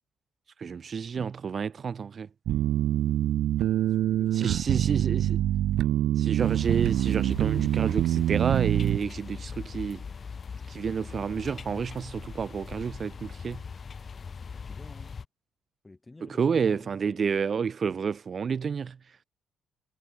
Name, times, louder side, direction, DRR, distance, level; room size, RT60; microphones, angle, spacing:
voice 1, 0.6-2.3 4.3-5.4 6.2-10.0 10.7-13.6 16.2-19.2, right 6 dB, 45° right, 0.9 m, -30 dB
sound 1, 2.5-9.0, right 13 dB, 80° right, 0.4 m, -25 dB
voice 2, 3.9-5.3 14.3-15.2 15.8-17.3, left 2 dB, 20° left, 6.8 m, -51 dB
sound 2, 6.4-15.3, left 5 dB, 40° left, 1.1 m, -41 dB
cardioid pair, 90°, 0 cm